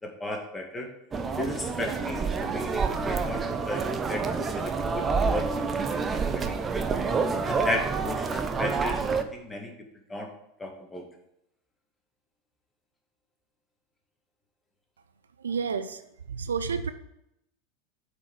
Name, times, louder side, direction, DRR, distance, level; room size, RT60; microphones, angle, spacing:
voice 1, 0.0-0.9 1.4-6.9 7.4-9.7 10.1-10.3 10.6-11.0, left 1 dB, 15° left, 1 dB, 2.2 m, -35 dB
sound 1, 1.1-9.2, right 5 dB, 25° right, 0.8 m, -28 dB
voice 2, 15.4-16.0 16.3-16.9, right 6 dB, 80° right, 12 dB, 0.5 m, -30 dB
8.6 x 5.1 x 6.5 m, 0.79 s
figure-of-eight pair, 85°, 0 cm